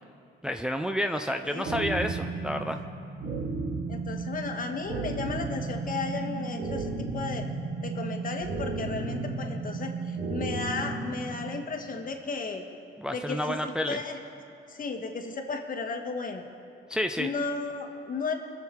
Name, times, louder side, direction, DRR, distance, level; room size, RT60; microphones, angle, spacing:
voice 1, 0.4-2.8 13.0-14.0 16.9-17.3, equal, 5° right, 6 dB, 0.5 m, -30 dB
sound 1, 1.6-11.6, right 3 dB, 70° right, 1.7 m, -33 dB
voice 2, 3.9-7.5 7.8-12.6 13.1-14.2 14.7-16.4 17.2-18.3, left 4 dB, 45° left, 4 dB, 1.5 m, -34 dB
22.5 x 7.6 x 4.5 m, 2.6 s
cardioid pair, 90°, 20 cm